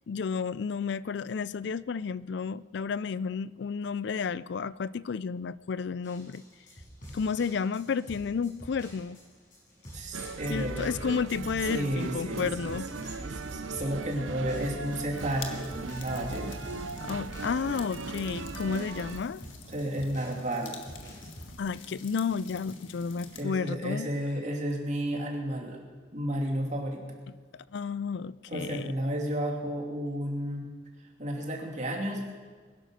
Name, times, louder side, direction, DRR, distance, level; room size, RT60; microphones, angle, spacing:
voice 1, 0.1-6.4 7.1-9.2 10.5-12.9 17.0-19.4 21.6-24.1 27.5-28.9, left 5 dB, 60° left, 19 dB, 0.4 m, -32 dB
sound 1, 6.0-21.6, equal, 40° left, 6.6 m, -48 dB
voice 2, 9.9-10.9 11.7-16.6 19.7-20.8 23.4-25.8 26.1-27.0 28.5-30.7 31.2-32.3, right 1 dB, 35° right, 0 dB, 2.7 m, -32 dB
sound 2, 10.1-19.2, right 3 dB, 80° right, 0.7 m, -38 dB
sound 3, 14.9-23.4, left 4 dB, 75° left, 1.6 m, -47 dB
21.5 x 10.5 x 6.4 m, 1.4 s
head